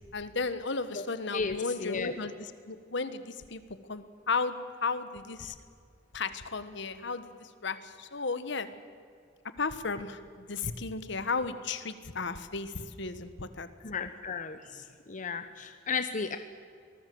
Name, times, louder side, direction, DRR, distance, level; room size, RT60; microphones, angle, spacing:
voice 1, 0.1-3.6 3.9-5.5 6.1-8.7 9.6-13.7, left 4 dB, 65° left, 12 dB, 1.4 m, -34 dB
voice 2, 1.3-2.2 13.8-16.4, left 5 dB, 45° left, 9 dB, 1.0 m, -34 dB
25.0 x 19.0 x 7.8 m, 2.2 s
head